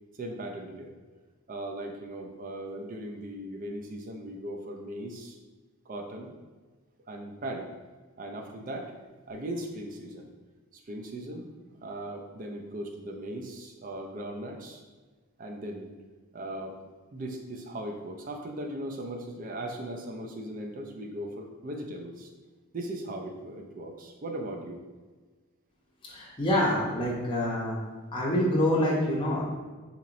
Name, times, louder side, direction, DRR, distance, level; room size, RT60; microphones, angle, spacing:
voice 1, 0.1-0.9 1.5-5.4 5.9-6.3 7.1-7.7 8.2-8.9 9.3-10.3 10.7-11.5 11.8-14.8 15.4-15.9 16.3-16.8 17.1-22.3 22.7-24.8, right 1 dB, 35° right, 3 dB, 0.4 m, -38 dB
voice 2, 26.0-27.8 28.1-29.4, left 1 dB, 25° left, -4 dB, 0.6 m, -26 dB
4.0 x 2.9 x 2.5 m, 1.4 s
head